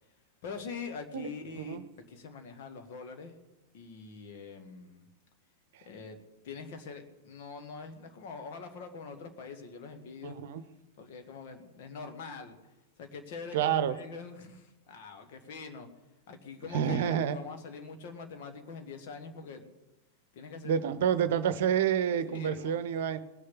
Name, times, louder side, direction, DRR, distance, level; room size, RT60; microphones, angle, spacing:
voice 1, 0.4-1.8 2.1-3.4 3.7-5.1 5.9-6.2 6.4-10.4 11.0-12.6 13.0-15.9 16.3-19.7 20.3-20.8 22.2-22.8, left 4 dB, 50° left, 1.9 m, -44 dB
voice 2, 10.2-10.6 13.5-14.0 16.7-17.4 20.6-23.2, right 8 dB, 55° right, 0.8 m, -28 dB
19.5 x 6.6 x 9.9 m
figure-of-eight pair, 90°, 0 cm